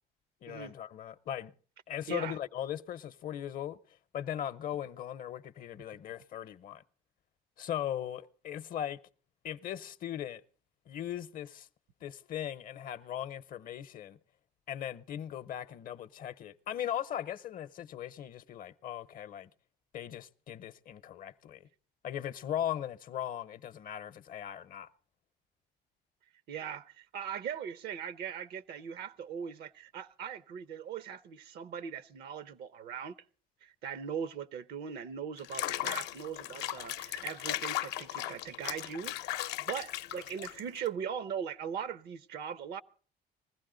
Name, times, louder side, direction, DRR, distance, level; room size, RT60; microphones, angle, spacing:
voice 1, 0.4-1.5 1.9-3.8 4.1-6.8 7.6-9.0 9.4-10.4 10.9-11.7 12.0-14.2 14.7-19.5 19.9-21.7 22.0-24.9, left 10 dB, 55° left, 0.7 m, -38 dB
voice 2, 26.5-33.1 33.6-42.8, right 7 dB, 75° right, 0.7 m, -40 dB
Water / Bathtub (filling or washing), 35.4-40.9, left 13 dB, 85° left, 0.6 m, -37 dB
20.5 x 15.0 x 3.8 m
cardioid pair, 110°, 17 cm